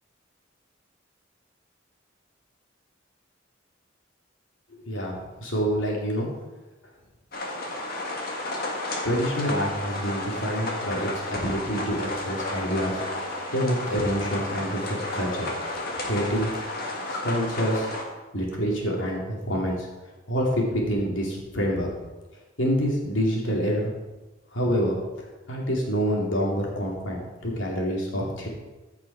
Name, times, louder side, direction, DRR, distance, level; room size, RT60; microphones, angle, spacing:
voice 1, 5.4-6.3 9.0-13.0 13.5-15.5 16.1-16.5 17.1-17.9 18.3-19.9 20.3-21.9 22.6-23.9 24.5-25.0 25.5-28.5, equal, 75° left, -2 dB, 2.8 m, -27 dB
sound 1, 7.3-18.0, left 1 dB, 50° left, 1.8 m, -32 dB
14.5 x 6.0 x 4.8 m, 1.1 s
head